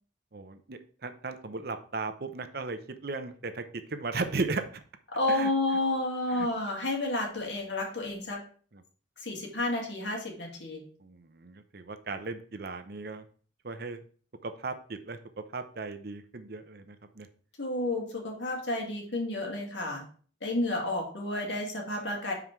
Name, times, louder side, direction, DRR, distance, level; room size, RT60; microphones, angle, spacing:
voice 1, 0.3-3.6 3.9-4.6 5.3-5.8 6.3-6.5 8.7-8.8 11.0-13.2 13.6-14.0 14.4-15.2 15.5-17.3, right 3 dB, 55° right, 9 dB, 0.7 m, -36 dB
voice 2, 5.1-8.4 9.2-10.8 17.6-20.0 20.4-22.3, left 2 dB, 75° left, 0 dB, 2.3 m, -31 dB
5.5 x 4.7 x 5.8 m, 0.43 s
head